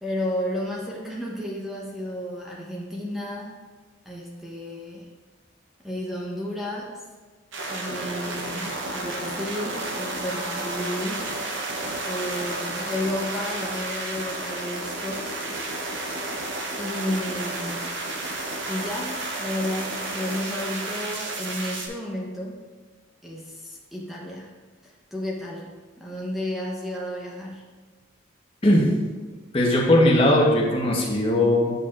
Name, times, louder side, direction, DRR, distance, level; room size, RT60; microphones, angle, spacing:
voice 1, 0.0-3.7 4.1-5.1 5.8-7.0 7.7-11.3 12.1-15.3 16.8-18.0 18.7-22.6 23.2-24.5 24.8-27.6, left 1 dB, ahead, -4 dB, 0.8 m, -32 dB
sound 1, 7.5-21.9, right 2 dB, 75° right, 0.8 m, -31 dB
voice 2, 29.5-31.7, left 1 dB, 30° left, -2 dB, 1.0 m, -19 dB
9.1 x 4.9 x 2.4 m, 1.4 s
head